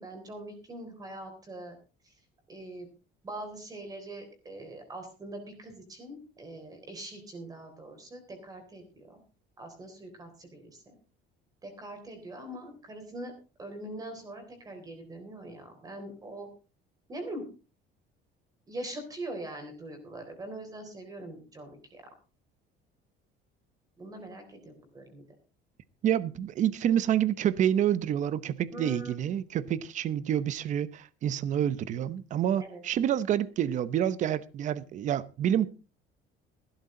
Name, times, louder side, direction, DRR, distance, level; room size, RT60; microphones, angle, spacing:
voice 1, 0.0-1.8 2.0-2.1 2.5-2.9 3.2-9.2 9.6-10.9 11.6-13.3 13.6-16.5 17.1-17.4 18.7-22.0 24.0-25.2 28.7-29.2 32.6-32.8, right 1 dB, 20° right, 3.8 m, -42 dB
voice 2, 26.0-35.7, right 10 dB, 40° right, 0.8 m, -28 dB
16.0 x 12.5 x 3.8 m
cardioid pair, 175°, 19 cm